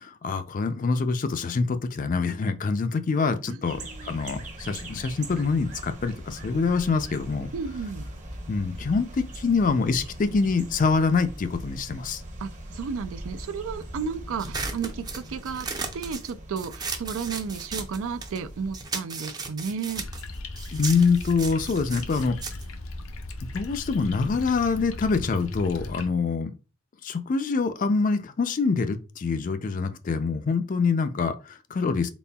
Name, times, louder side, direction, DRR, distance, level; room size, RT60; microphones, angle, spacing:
voice 1, 0.0-7.5 8.5-12.2 20.7-22.4 23.5-26.5 27.0-32.1, left 4 dB, 40° left, 0.4 m, -25 dB
voice 2, 3.5-4.1 7.5-8.0 12.4-15.7 15.9-20.1, right 6 dB, 80° right, 0.4 m, -33 dB
sound 1, 3.7-18.8, right 1 dB, 35° right, 0.9 m, -41 dB
sound 2, 14.4-18.4 18.7-23.5, right 4 dB, 20° right, 0.5 m, -36 dB
sound 3, 19.9-26.1, left 2 dB, 80° left, 0.6 m, -37 dB
4.1 x 3.6 x 2.3 m
head